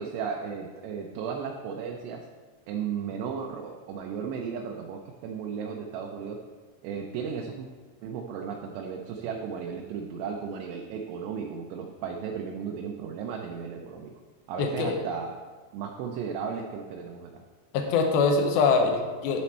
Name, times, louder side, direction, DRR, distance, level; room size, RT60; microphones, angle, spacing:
voice 1, 0.0-2.2 2.7-6.4 6.8-7.7 8.0-14.1 14.5-15.3 15.7-17.4, right 6 dB, 80° right, 1 dB, 2.6 m, -35 dB
voice 2, 14.6-15.0 17.7-19.4, left 4 dB, 80° left, 3 dB, 2.2 m, -23 dB
11.0 x 4.1 x 4.3 m, 1.4 s
omnidirectional pair, 5.3 m